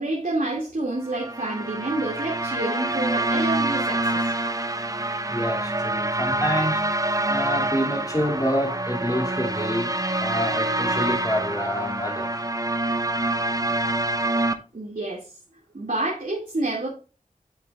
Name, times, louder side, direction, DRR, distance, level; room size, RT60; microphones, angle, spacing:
voice 1, 0.0-4.3 14.7-15.4 15.7-16.9, right 2 dB, 70° right, 2.3 m, -28 dB
sound 1, 1.0-14.5, right 2 dB, 25° right, 0.8 m, -26 dB
voice 2, 5.3-9.9 10.2-12.4, equal, 25° left, 2.6 m, -28 dB
8.4 x 7.6 x 2.4 m
wide cardioid pair, 45°, 15 cm